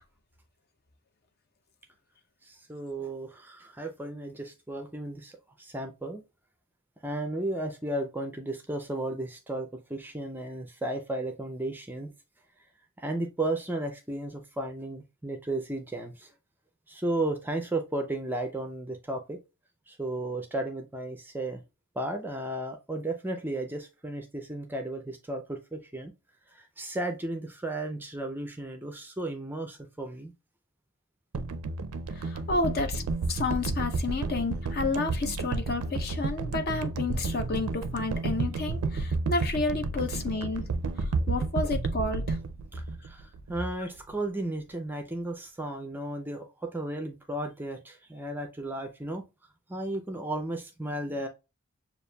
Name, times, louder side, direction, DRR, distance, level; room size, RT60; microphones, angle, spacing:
voice 1, 2.4-5.3 5.6-6.2 7.0-12.1 13.0-16.3 16.9-19.4 19.9-21.6 22.0-26.1 26.5-30.3 41.6-41.7 42.7-49.2 49.7-51.3, right 1 dB, 10° right, 0.4 m, -34 dB
sound 1, 31.3-43.7 44.0-44.1, right 3 dB, 80° right, 0.4 m, -31 dB
voice 2, 32.2-33.0 33.3-40.6 41.3-42.2, left 3 dB, 45° left, 0.7 m, -30 dB
6.7 x 2.5 x 2.2 m
head